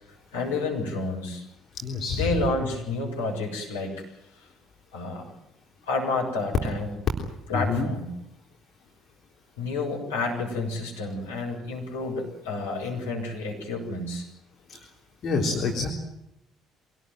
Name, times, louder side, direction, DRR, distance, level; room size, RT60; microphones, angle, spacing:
voice 1, 0.3-1.4 2.2-3.9 4.9-5.3 5.9-6.9 7.5-8.1 9.6-14.3, left 3 dB, 75° left, -1 dB, 7.1 m, -30 dB
voice 2, 1.8-2.2 7.5-7.9 14.7-14.8 15.2-15.9, left 4 dB, 45° left, 1 dB, 3.8 m, -27 dB
25.5 x 18.5 x 9.4 m, 0.83 s
figure-of-eight pair, 50°, 0 cm